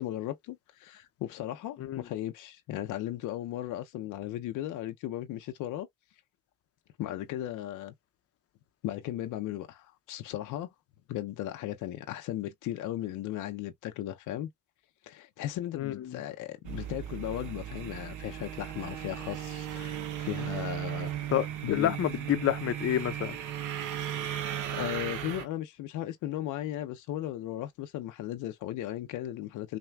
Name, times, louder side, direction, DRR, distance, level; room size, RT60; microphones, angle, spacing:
voice 1, 0.0-5.9 7.0-7.9 8.8-10.7 11.1-14.5 15.0-21.1 21.6-22.0 24.7-29.8, left 13 dB, 90° left, 0.7 m, -36 dB
voice 2, 15.8-16.2 21.3-23.4, left 11 dB, 50° left, 0.7 m, -29 dB
sound 1, 16.6-25.5, right 10 dB, 80° right, 0.8 m, -36 dB
5.8 x 2.3 x 2.3 m
cardioid pair, 90°, 30 cm